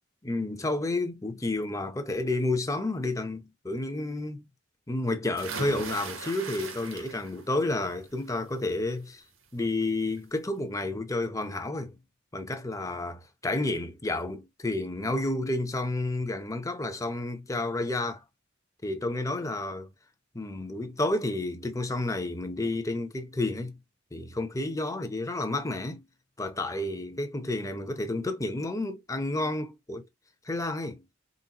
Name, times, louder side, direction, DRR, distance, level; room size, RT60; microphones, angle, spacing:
voice 1, 0.2-4.5 4.9-9.2 9.5-12.0 12.3-18.2 18.8-19.9 20.3-23.8 24.1-26.0 26.4-30.0 30.5-31.0, left 2 dB, 15° left, 0.7 m, -30 dB
sound 1, 5.4-7.5 7.9-8.3 9.7-9.8 10.2-10.3, right 4 dB, 80° right, 1.2 m, -38 dB
3.9 x 2.1 x 4.1 m
head